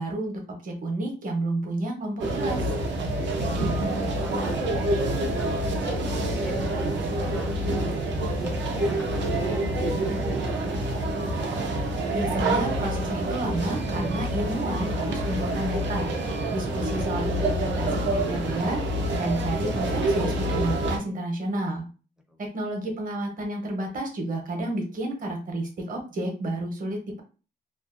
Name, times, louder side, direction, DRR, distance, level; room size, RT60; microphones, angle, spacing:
voice 1, 0.0-2.7 12.1-16.1 16.5-21.9 22.4-27.2, right 1 dB, 50° right, 2 dB, 0.8 m, -31 dB
sound 1, 2.2-21.0, right 1 dB, 80° right, 0.6 m, -27 dB
voice 2, 3.2-3.7 4.2-7.9 8.4-10.9 22.3-22.5, right 1 dB, 5° right, 2 dB, 0.4 m, -44 dB
2.5 x 2.1 x 2.4 m, 0.35 s
wide cardioid pair, 155°, 18 cm